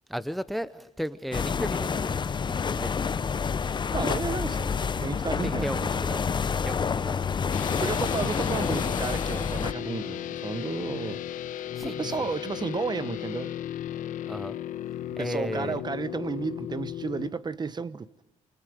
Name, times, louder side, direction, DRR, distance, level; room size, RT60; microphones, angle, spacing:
voice 1, 0.1-3.0 5.4-8.1 11.7-12.3 14.3-14.6 15.2-15.8, equal, ahead, 0.7 m, -35 dB
sound 1, 1.3-9.7, left 6 dB, 35° left, 0.7 m, -28 dB
voice 2, 3.9-6.0 7.8-11.2 11.8-13.5 15.2-18.1, right 5 dB, 30° right, 1.0 m, -32 dB
sound 2, 7.5-17.3, left 11 dB, 75° left, 1.1 m, -35 dB
28.0 x 25.5 x 5.0 m
cardioid pair, 90°, 14 cm